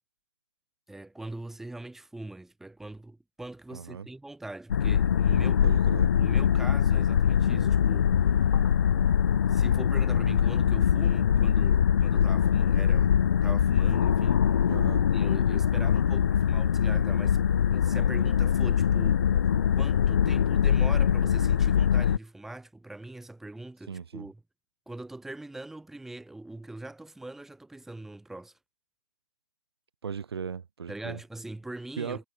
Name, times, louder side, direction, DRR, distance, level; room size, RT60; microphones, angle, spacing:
voice 1, 0.9-5.7 6.2-8.6 9.5-14.6 15.1-17.4 17.7-19.2 19.7-24.4 24.9-28.5 30.9-32.3, right 2 dB, ahead, 6.0 m, -42 dB
voice 2, 3.7-4.1 5.6-6.1 14.7-15.1 23.9-24.3 30.0-31.2 32.0-32.2, right 6 dB, 55° right, 2.9 m, -37 dB
sound 1, 4.7-22.2, left 8 dB, 40° left, 0.4 m, -23 dB
hypercardioid pair, 155°, 15 cm